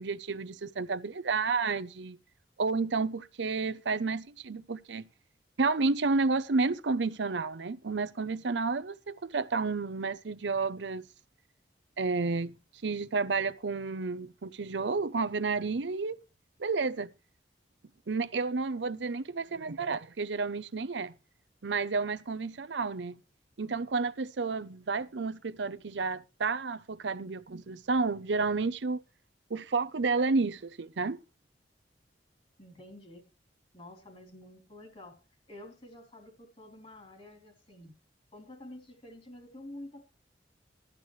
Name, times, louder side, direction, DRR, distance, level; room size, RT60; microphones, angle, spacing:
voice 1, 0.0-2.2 2.6-5.1 5.6-11.0 12.0-12.6 12.8-16.2 16.6-17.1 18.1-21.1 21.6-23.2 23.6-29.0 29.5-31.2, right 4 dB, 80° right, 0.7 m, -31 dB
voice 2, 19.5-19.8 32.6-33.2 33.7-35.2 35.5-37.9 38.3-40.0, left 1 dB, 35° left, 3.6 m, -49 dB
16.5 x 12.0 x 3.2 m
head